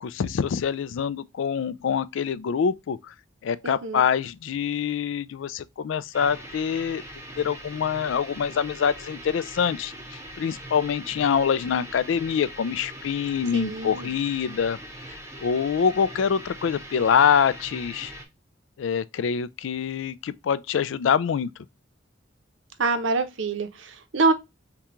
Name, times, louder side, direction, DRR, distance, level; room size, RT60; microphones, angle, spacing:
voice 1, 0.0-3.0 3.4-7.0 7.4-9.9 10.4-14.8 15.4-18.1 18.8-21.5, left 7 dB, 80° left, 0.4 m, -25 dB
voice 2, 3.6-4.0 13.5-14.1 22.8-24.3, right 3 dB, 80° right, 0.7 m, -25 dB
sound 1, 6.1-18.3, right 1 dB, 15° right, 0.8 m, -41 dB
5.8 x 2.3 x 3.0 m
head